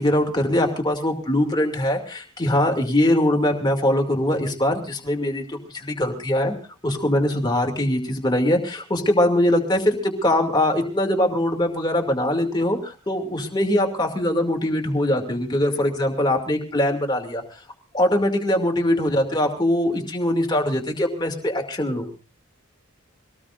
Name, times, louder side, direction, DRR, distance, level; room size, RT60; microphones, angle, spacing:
voice 1, 0.0-6.6 6.8-17.4 17.9-22.1, left 1 dB, 20° left, 3 dB, 2.6 m, -22 dB
24.5 x 18.5 x 2.6 m, 0.34 s
head